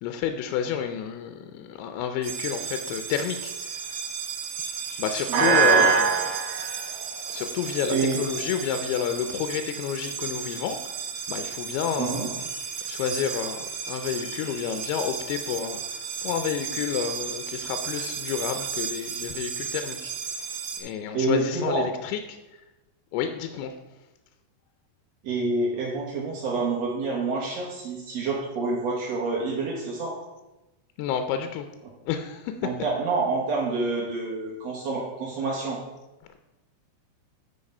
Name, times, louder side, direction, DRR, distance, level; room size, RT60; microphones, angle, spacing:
voice 1, 0.0-3.8 4.9-6.1 7.3-10.8 11.3-12.3 12.8-15.8 16.2-20.1 20.8-22.4 23.1-23.7 31.0-31.7 32.1-32.5, left 8 dB, 80° left, 8 dB, 2.4 m, -30 dB
sound 1, 2.2-20.8, right 6 dB, 65° right, 2.7 m, -30 dB
voice 2, 5.3-5.9 7.9-8.2 12.0-12.3 21.1-21.8 25.2-30.2 32.6-35.8, right 3 dB, 90° right, -3 dB, 1.4 m, -27 dB
8.6 x 4.8 x 5.3 m, 1.0 s
omnidirectional pair, 4.7 m